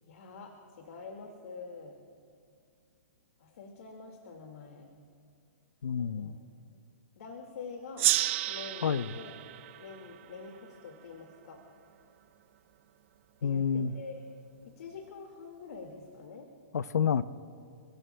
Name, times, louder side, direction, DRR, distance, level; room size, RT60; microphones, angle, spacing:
voice 1, 0.0-2.0 3.4-4.9 6.0-6.3 6.7-6.8 7.2-8.1 8.5-9.4 9.8-11.6 13.4-14.4 14.6-16.5, left 4 dB, 65° left, 2 dB, 2.0 m, -46 dB
voice 2, 5.8-6.3 8.8-9.1 13.4-13.9 16.7-17.2, left 7 dB, 85° left, 14 dB, 0.6 m, -29 dB
Gong, 8.0-11.1, right 15 dB, 50° right, 0.6 m, -32 dB
29.0 x 17.0 x 2.2 m, 2.3 s
hypercardioid pair, 140°, 9 cm